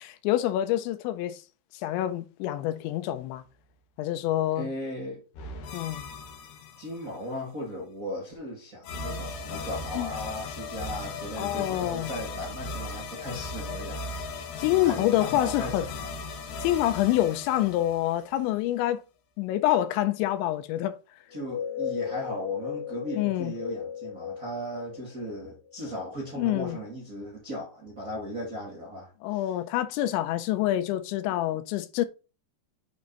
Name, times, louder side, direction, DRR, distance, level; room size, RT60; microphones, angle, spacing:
voice 1, 0.0-1.4 1.8-3.4 4.0-4.7 5.7-6.1 10.0-10.1 11.4-12.1 14.6-15.9 16.6-19.0 19.4-21.0 23.2-23.5 26.4-26.8 29.2-32.1, left 13 dB, 85° left, 3.0 m, -26 dB
voice 2, 4.5-5.2 6.8-14.0 14.3-16.1 21.3-29.6, equal, 45° right, 1.1 m, -37 dB
sound 1, 5.3-7.2 8.8-18.6, left 3 dB, 70° left, 3.2 m, -37 dB
sound 2, 21.3-25.9, left 8 dB, 45° left, 3.7 m, -36 dB
7.8 x 4.2 x 3.8 m
omnidirectional pair, 5.2 m